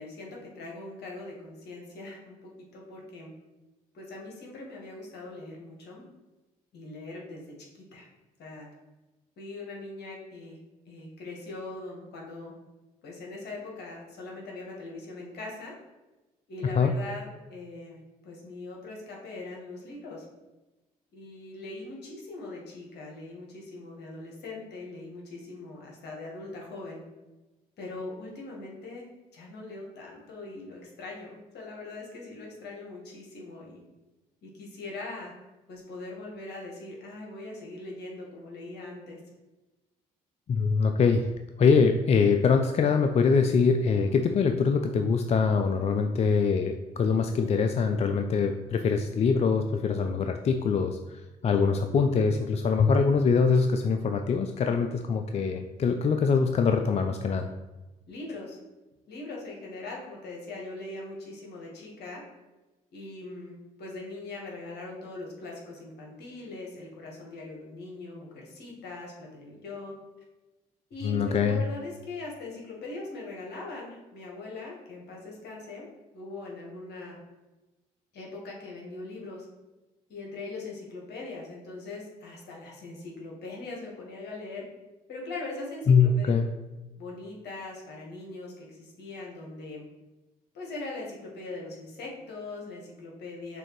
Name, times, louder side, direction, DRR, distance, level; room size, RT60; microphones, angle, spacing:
voice 1, 0.0-3.3 3.9-6.0 6.7-8.1 8.4-8.7 9.4-10.6 10.9-12.5 13.0-15.7 16.5-20.2 21.1-27.0 27.8-29.1 29.3-33.8 34.4-35.3 35.7-39.2 58.1-58.6 59.1-62.2 62.9-69.9 70.9-75.9 76.1-77.2 78.1-79.5 80.1-84.6 85.1-86.3 87.0-89.8 90.5-93.6, left 2 dB, 65° left, -2 dB, 1.4 m, -41 dB
voice 2, 40.5-41.3 41.6-57.5 71.0-71.6 85.9-86.5, left 5 dB, 35° left, 5 dB, 0.4 m, -23 dB
6.2 x 2.6 x 3.1 m, 1.1 s
hypercardioid pair, 55°, 19 cm